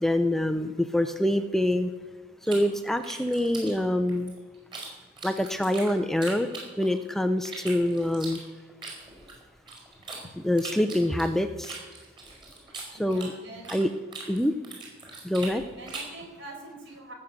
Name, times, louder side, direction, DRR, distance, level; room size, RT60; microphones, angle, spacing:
voice 1, 0.0-1.9 2.4-4.3 5.2-6.5 6.8-8.4 10.4-11.8 13.0-13.3 13.7-13.9 14.3-14.5 15.2-15.6, left 1 dB, ahead, 7 dB, 0.5 m, -25 dB
sound 1, 2.4-4.9 5.2-7.1 7.4-10.2 10.6-13.9 14.1-16.2, right 3 dB, 25° right, 5.1 m, -41 dB
voice 2, 13.0-13.7 15.8-17.1, right 2 dB, 65° right, 1 dB, 4.7 m, -44 dB
18.5 x 6.5 x 8.3 m, 1.3 s
head